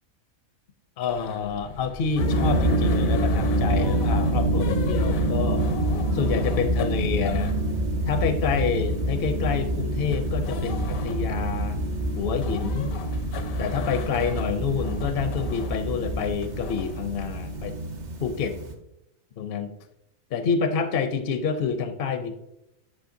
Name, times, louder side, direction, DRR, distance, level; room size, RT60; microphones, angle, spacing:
voice 1, 1.0-5.7 6.1-7.6 8.1-11.8 12.2-12.9 13.6-17.8 18.2-18.5 19.4-19.8 20.3-22.3, left 6 dB, 60° left, 8 dB, 0.6 m, -28 dB
sound 1, 1.1-17.0, left 6 dB, 80° left, 1.0 m, -39 dB
sound 2, 2.2-18.7, right 1 dB, 45° right, 0.7 m, -26 dB
8.5 x 5.2 x 2.6 m, 0.85 s
omnidirectional pair, 1.4 m